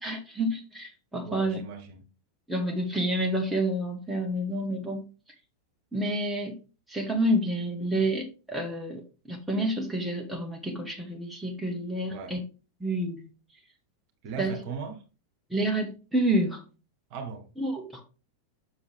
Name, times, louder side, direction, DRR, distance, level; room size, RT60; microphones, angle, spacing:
voice 1, 0.0-1.6 2.5-5.1 5.9-6.6 6.9-9.0 9.3-12.4 12.8-13.3 14.4-14.5 15.5-16.6 17.6-18.0, right 1 dB, 5° right, 2 dB, 1.6 m, -29 dB
voice 2, 1.2-2.0 12.1-12.4 14.2-15.0 17.1-17.5, right 5 dB, 45° right, 5 dB, 1.6 m, -38 dB
7.0 x 6.3 x 3.5 m, 0.33 s
figure-of-eight pair, 90°, 0 cm